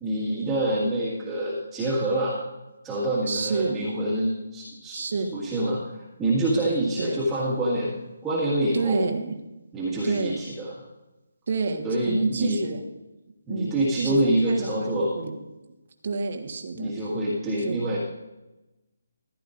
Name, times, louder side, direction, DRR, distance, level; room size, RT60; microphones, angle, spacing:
voice 1, 0.0-2.4 2.8-5.0 5.3-9.0 9.7-10.7 11.8-12.6 13.5-15.1 16.8-18.0, right 1 dB, 10° right, -9 dB, 1.9 m, -26 dB
voice 2, 3.3-3.9 4.9-5.3 7.0-7.3 8.7-9.4 10.0-10.4 11.5-12.8 13.5-15.4 16.0-16.9 17.6-17.9, right 4 dB, 50° right, 4 dB, 1.5 m, -29 dB
15.0 x 11.0 x 2.6 m, 1.0 s
hypercardioid pair, 165°, 0 cm